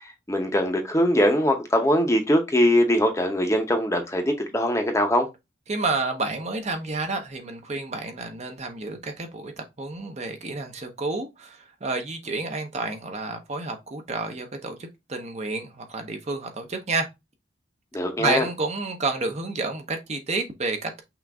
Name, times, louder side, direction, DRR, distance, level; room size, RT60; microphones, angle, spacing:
voice 1, 0.3-5.3 17.9-18.5, equal, 15° left, 0.8 m, -22 dB
voice 2, 5.7-9.5 9.8-17.1 18.2-21.0, right 3 dB, 35° right, 0.8 m, -30 dB
5.9 x 2.6 x 3.5 m
head